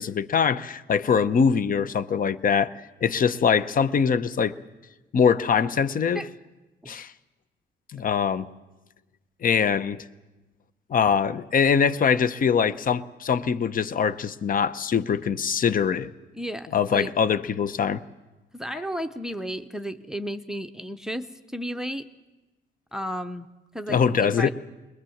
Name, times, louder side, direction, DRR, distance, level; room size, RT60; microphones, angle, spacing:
voice 1, 0.0-2.7 3.0-4.6 5.1-6.3 6.9-7.1 7.9-8.5 9.4-10.0 10.9-16.1 16.7-18.0 23.9-24.5, left 6 dB, 45° left, 15 dB, 0.8 m, -23 dB
voice 2, 16.3-17.1 18.5-22.0 22.9-23.5 23.7-24.5, equal, 5° right, 10 dB, 0.8 m, -33 dB
22.0 x 20.5 x 7.2 m, 1.1 s
cardioid pair, 90°, 20 cm